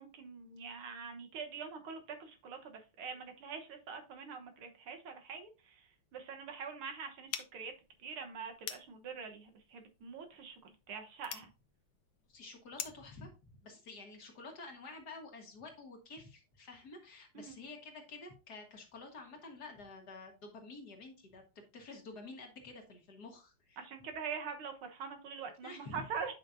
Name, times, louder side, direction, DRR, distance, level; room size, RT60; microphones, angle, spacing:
voice 1, 0.0-7.7 8.0-11.5 17.3-17.6 23.8-26.3, right 6 dB, 75° right, 5 dB, 2.0 m, -44 dB
sound 1, 7.3-13.1, left 10 dB, 70° left, 1.5 m, -47 dB
voice 2, 12.3-23.8 25.6-26.1, left 3 dB, 50° left, 2 dB, 1.9 m, -50 dB
9.4 x 5.5 x 2.6 m, 0.29 s
omnidirectional pair, 2.4 m